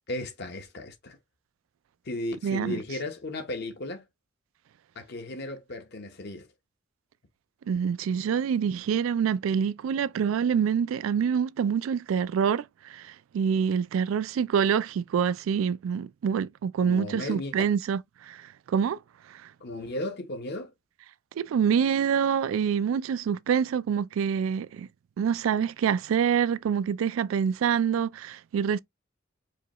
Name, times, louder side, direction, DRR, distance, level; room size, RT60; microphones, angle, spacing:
voice 1, 0.1-1.2 2.0-4.0 4.9-6.5 16.8-17.7 19.6-20.7, left 2 dB, 55° left, 1.0 m, -35 dB
voice 2, 2.4-2.8 7.7-12.6 12.9-19.0 19.3-19.4 21.4-24.9 25.2-28.8, right 7 dB, 90° right, 0.3 m, -26 dB
4.8 x 2.3 x 3.0 m
head